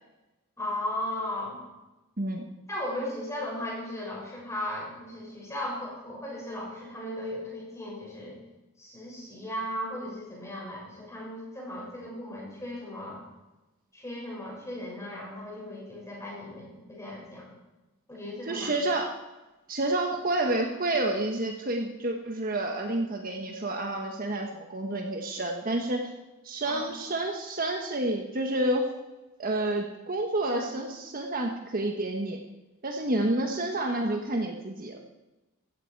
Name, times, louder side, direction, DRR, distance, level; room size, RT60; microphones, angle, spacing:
voice 1, 0.6-1.6 2.7-8.4 8.8-13.2 13.9-17.6 18.1-18.7 26.7-26.9 30.5-30.7, left 1 dB, 15° left, -4 dB, 6.6 m, -36 dB
voice 2, 18.5-19.1 19.7-26.1 26.4-28.9 29.4-32.4 32.8-35.0, right 1 dB, 40° right, 3 dB, 1.4 m, -29 dB
15.5 x 15.0 x 4.8 m, 1.0 s
head